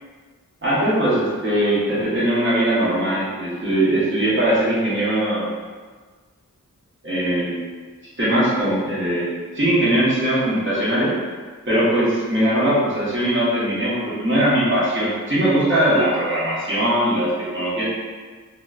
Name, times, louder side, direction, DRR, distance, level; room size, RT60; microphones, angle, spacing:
voice 1, 0.6-5.5 7.0-7.5 8.2-11.1 11.7-17.8, right 1 dB, 35° right, -10 dB, 1.0 m, -20 dB
3.0 x 2.0 x 2.3 m, 1.4 s
wide cardioid pair, 65°, 33 cm